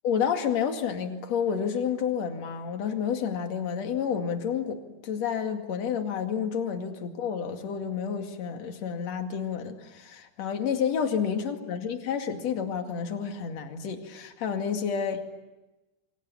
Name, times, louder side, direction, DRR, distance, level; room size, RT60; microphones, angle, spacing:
voice 1, 0.0-4.8 5.0-15.2, left 7 dB, 50° left, 5 dB, 3.1 m, -30 dB
28.5 x 24.0 x 8.7 m, 1.1 s
omnidirectional pair, 4.6 m